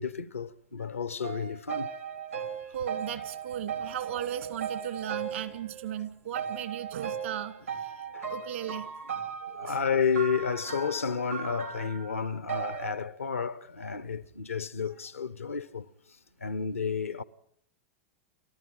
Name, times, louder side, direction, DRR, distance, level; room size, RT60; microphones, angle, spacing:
voice 1, 0.0-1.9 8.1-8.3 9.4-15.9 16.4-17.2, left 6 dB, 90° left, 0.8 m, -31 dB
sound 1, 1.2-6.0 6.3-12.9, right 7 dB, 90° right, 3.3 m, -37 dB
voice 2, 2.7-8.9 9.6-9.8, right 10 dB, 70° right, 2.3 m, -36 dB
29.0 x 14.0 x 7.8 m
figure-of-eight pair, 95°, 7 cm